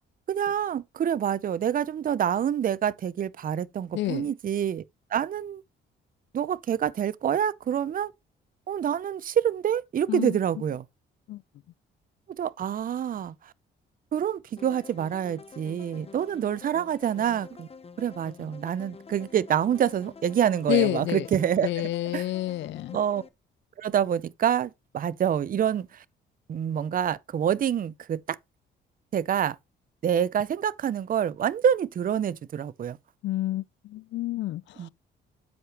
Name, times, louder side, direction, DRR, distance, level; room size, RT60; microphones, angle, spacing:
voice 1, 0.3-4.8 5.1-5.6 6.3-8.1 8.7-10.8 12.4-13.5 14.1-17.7 18.0-22.2 22.9-23.2 23.8-26.0 26.5-28.4 29.1-29.6 30.0-33.0 34.8-34.9, right 9 dB, 45° right, 0.6 m, -27 dB
voice 2, 3.9-4.3 10.1-10.4 11.3-11.4 20.7-21.3 21.6-23.0 33.2-34.9, left 16 dB, 70° left, 0.4 m, -29 dB
sound 1, 14.6-23.3, left 5 dB, 30° left, 0.9 m, -48 dB
13.0 x 4.9 x 3.0 m
cardioid pair, 90°, 20 cm